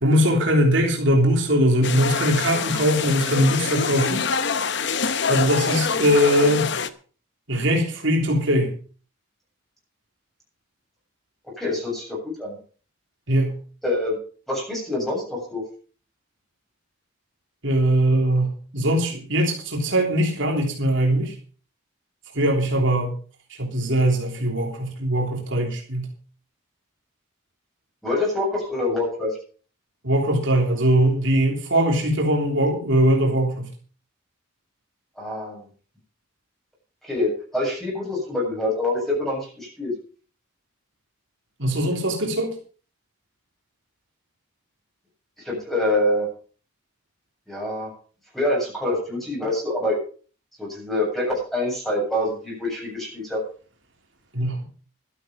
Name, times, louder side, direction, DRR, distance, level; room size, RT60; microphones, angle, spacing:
voice 1, 0.0-4.3 5.3-6.7 7.5-8.7 13.3-13.6 17.6-21.3 22.3-23.1 23.6-26.1 30.0-33.7 41.6-42.5 54.3-54.7, equal, 60° right, 1 dB, 3.3 m, -21 dB
sound 1, 1.8-6.9, left 5 dB, 55° left, 0.9 m, -25 dB
voice 2, 11.6-12.6 13.8-14.2 14.5-15.6 28.0-29.3 35.2-35.6 37.0-39.9 45.4-46.3 47.5-47.9 48.3-50.0 50.6-53.4, left 1 dB, ahead, -2 dB, 7.8 m, -25 dB
12.5 x 12.5 x 5.2 m, 0.40 s
head